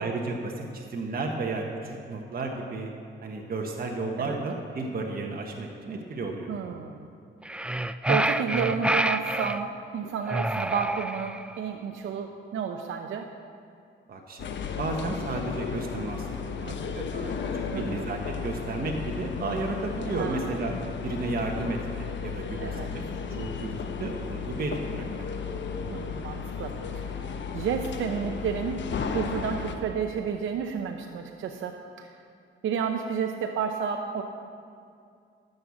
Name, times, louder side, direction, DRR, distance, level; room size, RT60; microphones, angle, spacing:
voice 1, 0.0-2.9 3.2-6.5 14.1-16.3 16.5-20.7 21.0-23.0 23.3-25.3, right 3 dB, 45° right, 0 dB, 1.3 m, -33 dB
voice 2, 6.5-7.1 8.1-13.3 17.7-18.0 20.2-20.6 22.6-22.9 25.9-32.1 32.6-34.2, right 7 dB, 75° right, 4 dB, 0.7 m, -31 dB
sound 1, 7.4-9.6 10.3-11.5, right 1 dB, 5° right, 0.4 m, -27 dB
sound 2, 14.4-29.8, left 6 dB, 65° left, 1.0 m, -34 dB
13.5 x 6.6 x 7.2 m, 2.4 s
cardioid pair, 80°, 21 cm